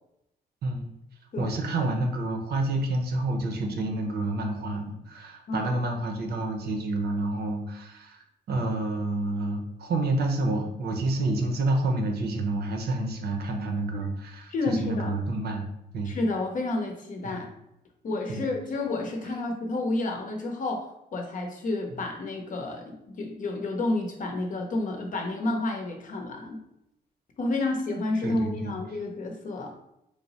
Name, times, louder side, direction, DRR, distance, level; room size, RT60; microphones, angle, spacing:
voice 1, 1.4-15.6 15.9-16.2 17.2-17.4 18.3-18.5 28.2-28.7, right 2 dB, 70° right, 3 dB, 0.7 m, -29 dB
voice 2, 14.5-15.1 16.1-17.5 18.0-26.6 27.4-29.7, left 2 dB, 50° left, 2 dB, 0.7 m, -30 dB
3.3 x 2.0 x 3.9 m, 0.82 s
cardioid pair, 115°, 17 cm